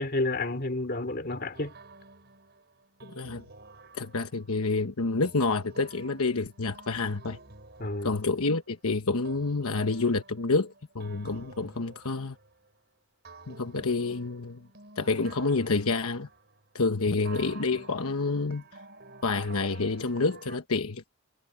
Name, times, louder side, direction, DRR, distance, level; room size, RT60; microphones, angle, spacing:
voice 1, 0.0-1.7 7.8-8.1, left 2 dB, 45° left, 2.7 m, -30 dB
sound 1, 1.5-4.6 5.2-8.8 9.2-12.8 13.2-16.7 17.2-20.6, right 3 dB, 45° right, 5.6 m, -51 dB
voice 2, 3.1-3.4 3.9-7.4 8.0-12.4 13.5-14.7 15.0-16.3 16.7-18.6 19.2-21.1, left 3 dB, 80° left, 1.1 m, -28 dB
head